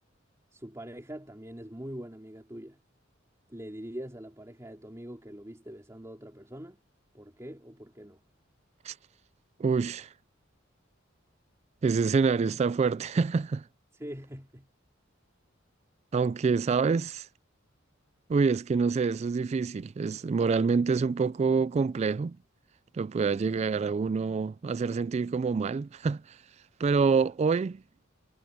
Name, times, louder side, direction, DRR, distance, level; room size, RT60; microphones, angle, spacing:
voice 1, 0.5-2.8 3.5-6.8 7.1-8.2 13.9-14.7, equal, 15° right, 2.7 m, -43 dB
voice 2, 9.6-10.1 11.8-13.6 16.1-17.3 18.3-22.4 22.9-26.4 26.8-27.8, right 5 dB, 35° right, 0.3 m, -26 dB
head